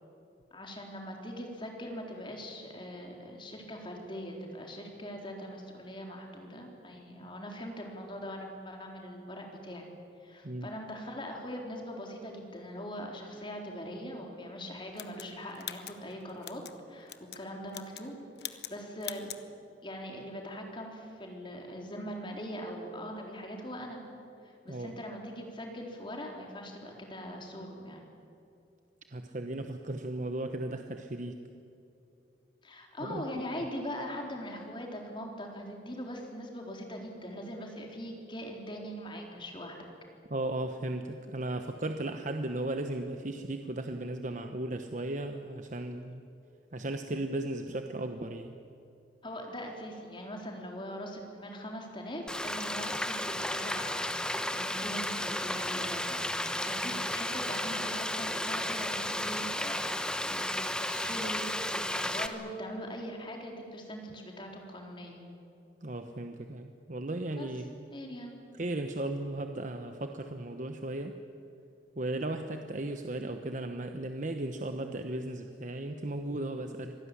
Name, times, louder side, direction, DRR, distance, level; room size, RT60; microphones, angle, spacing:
voice 1, 0.5-9.9 10.2-16.6 16.9-19.3 19.8-24.0 24.4-28.0 32.6-39.8 49.2-59.8 60.2-65.2 67.3-67.5 67.9-68.3, equal, 30° left, 1 dB, 4.0 m, -41 dB
sound 1, 15.0-16.8 17.1-17.4 17.7-18.1 18.4-18.8 19.0-19.4, left 12 dB, 65° left, 1.1 m, -42 dB
voice 2, 29.1-31.4 33.0-33.2 40.3-46.3 46.7-48.5 65.8-67.9 68.6-71.2 72.0-76.9, right 1 dB, 45° right, 6 dB, 1.1 m, -36 dB
Frying (food), 52.3-62.3, left 1 dB, 5° left, 1.1 m, -33 dB
25.5 x 18.5 x 10.0 m, 2.6 s
head